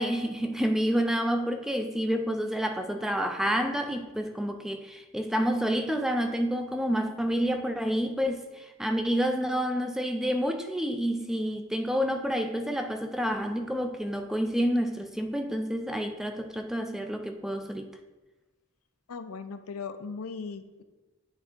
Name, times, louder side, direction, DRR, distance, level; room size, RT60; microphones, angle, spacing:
voice 1, 0.0-17.9, equal, ahead, 6 dB, 0.3 m, -29 dB
voice 2, 19.1-20.8, left 5 dB, 90° left, 10 dB, 0.5 m, -38 dB
8.6 x 3.5 x 4.4 m, 1.2 s
head